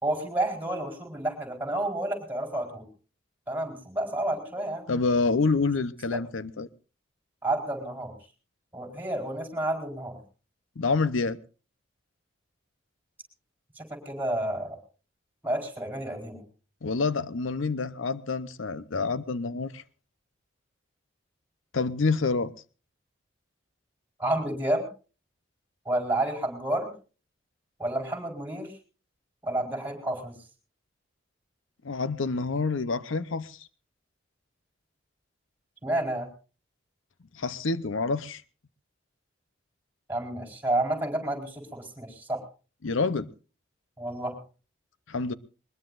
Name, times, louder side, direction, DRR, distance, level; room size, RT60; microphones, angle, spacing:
voice 1, 0.0-2.8 3.5-4.8 6.1-6.2 7.4-8.1 8.7-10.2 13.7-14.8 15.4-16.4 24.2-24.9 25.8-26.9 27.8-28.8 29.4-30.4 35.8-36.3 40.1-42.4 44.0-44.4, right 1 dB, 10° right, 4.3 m, -30 dB
voice 2, 4.9-6.7 10.8-11.4 16.8-19.8 21.7-22.5 31.8-33.7 37.3-38.4 42.8-43.3 45.1-45.3, left 4 dB, 80° left, 0.7 m, -27 dB
21.5 x 21.0 x 2.5 m
head